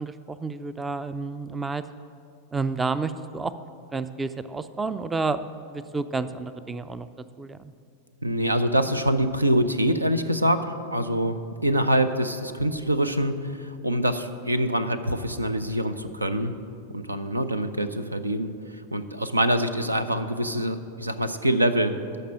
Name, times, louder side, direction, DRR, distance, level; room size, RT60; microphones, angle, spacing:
voice 1, 0.0-1.8 2.5-3.5 3.9-7.1 7.4-7.7, right 4 dB, 15° right, 13 dB, 0.4 m, -30 dB
voice 2, 8.2-11.4 11.6-16.5 16.9-18.5 18.9-22.0, right 1 dB, 85° right, 11 dB, 0.5 m, -25 dB
13.0 x 5.3 x 7.6 m, 2.4 s
figure-of-eight pair, 90°, 0 cm